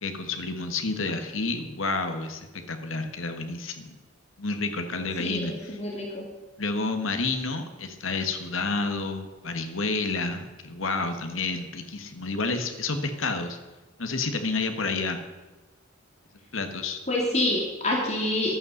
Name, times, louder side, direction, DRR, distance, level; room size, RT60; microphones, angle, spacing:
voice 1, 0.0-4.0 4.4-5.8 6.6-13.6 14.0-15.2 16.5-17.0, left 3 dB, 85° left, 6 dB, 1.5 m, -30 dB
voice 2, 5.2-6.2 17.1-18.6, left 1 dB, 35° left, -2 dB, 2.9 m, -27 dB
12.5 x 8.8 x 7.9 m, 1.2 s
head